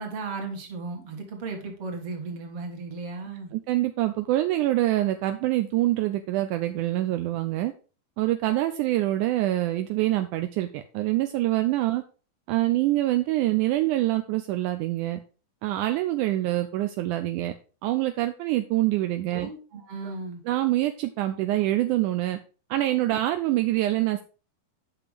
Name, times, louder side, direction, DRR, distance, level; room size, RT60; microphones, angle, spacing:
voice 1, 0.0-3.5 19.3-20.4, right 3 dB, 50° right, 3 dB, 2.7 m, -35 dB
voice 2, 3.5-7.7 8.2-12.0 12.5-15.2 15.6-17.5 17.8-19.5 20.0-20.1 20.5-22.4 22.7-24.2, right 15 dB, 80° right, 8 dB, 2.0 m, -25 dB
8.9 x 5.9 x 5.0 m, 0.36 s
omnidirectional pair, 3.8 m